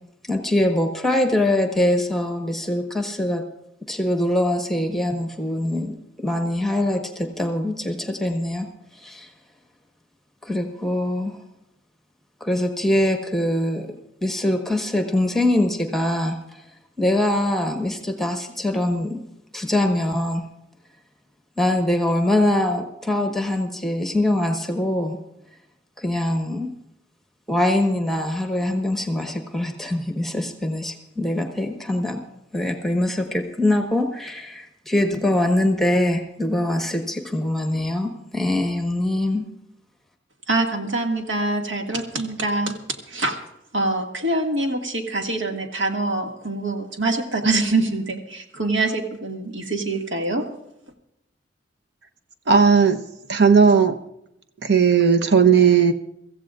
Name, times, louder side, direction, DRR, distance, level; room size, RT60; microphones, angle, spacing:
voice 1, 0.3-3.4 3.8-8.7 9.0-9.3 10.4-11.4 12.4-13.9 14.2-16.6 17.0-19.2 19.5-20.5 21.6-25.2 26.0-26.7 27.5-32.2 32.5-39.5, left 1 dB, ahead, 3 dB, 1.3 m, -23 dB
voice 2, 40.5-42.8 43.1-43.4 43.7-50.4, right 2 dB, 90° right, 2 dB, 2.0 m, -24 dB
voice 3, 52.5-53.0 53.3-54.0 54.6-55.9, right 6 dB, 60° right, 8 dB, 0.9 m, -15 dB
24.0 x 15.0 x 2.5 m, 0.82 s
head